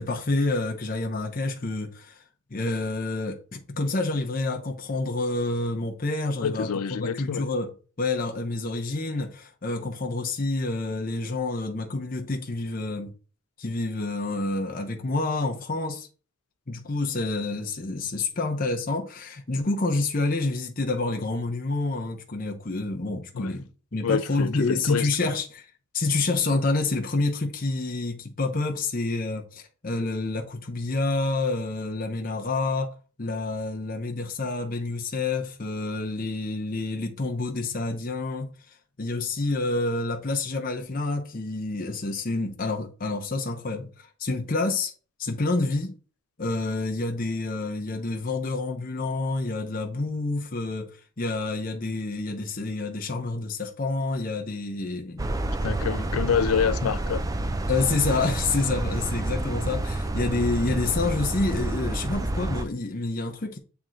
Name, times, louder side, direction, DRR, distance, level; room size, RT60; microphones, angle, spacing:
voice 1, 0.0-2.2 2.5-13.1 13.6-16.1 16.7-25.6 25.9-32.9 33.2-38.5 39.0-44.9 45.2-45.9 46.4-50.9 51.2-55.3 57.7-63.6, left 3 dB, 40° left, 0.8 m, -28 dB
voice 2, 6.4-7.5 23.3-23.5 24.0-25.3 55.6-57.2, left 7 dB, 80° left, 0.5 m, -27 dB
sound 1, 55.2-62.6, right 2 dB, 15° right, 0.3 m, -29 dB
7.6 x 3.4 x 3.9 m
head